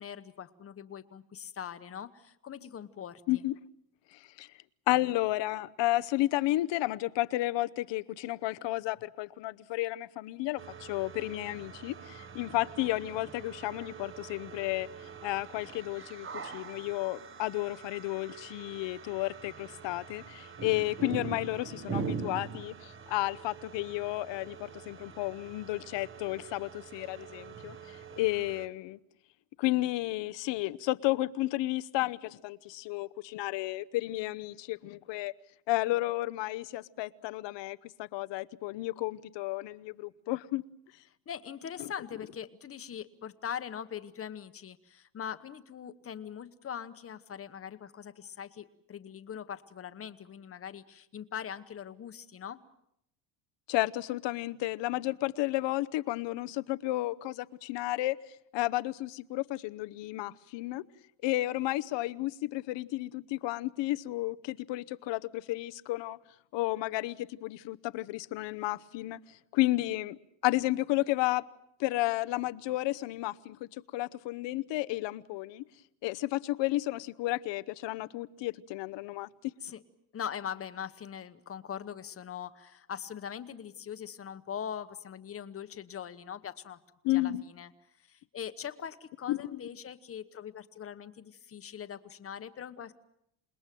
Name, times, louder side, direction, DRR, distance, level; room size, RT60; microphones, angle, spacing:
voice 1, 0.0-3.2 41.3-52.6 79.6-79.8 80.1-86.8 87.1-87.7 88.1-92.9, left 8 dB, 30° left, 1.1 m, -41 dB
voice 2, 4.1-4.5 4.9-14.9 15.2-29.0 29.6-35.3 35.7-40.6 41.8-41.9 53.7-58.2 58.5-60.8 61.2-66.2 66.5-70.2 70.4-71.4 71.8-75.6 76.0-79.3 87.0-87.4 89.3-89.4, left 18 dB, 60° left, 0.9 m, -32 dB
sound 1, 10.6-28.7, right 6 dB, 25° right, 1.2 m, -43 dB
28.0 x 20.5 x 7.7 m
cardioid pair, 155°, 48 cm